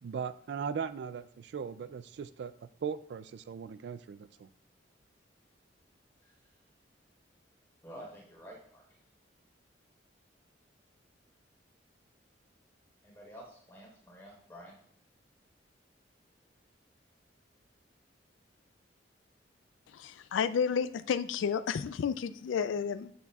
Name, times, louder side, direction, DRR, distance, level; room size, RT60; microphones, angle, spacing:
voice 1, 0.0-2.5 2.8-4.5, right 6 dB, 60° right, 14 dB, 0.3 m, -38 dB
voice 2, 7.8-8.8 13.0-14.8, equal, 15° left, -3 dB, 3.9 m, -50 dB
voice 3, 19.9-23.1, left 7 dB, 90° left, 14 dB, 0.3 m, -31 dB
13.5 x 8.4 x 2.4 m, 0.63 s
head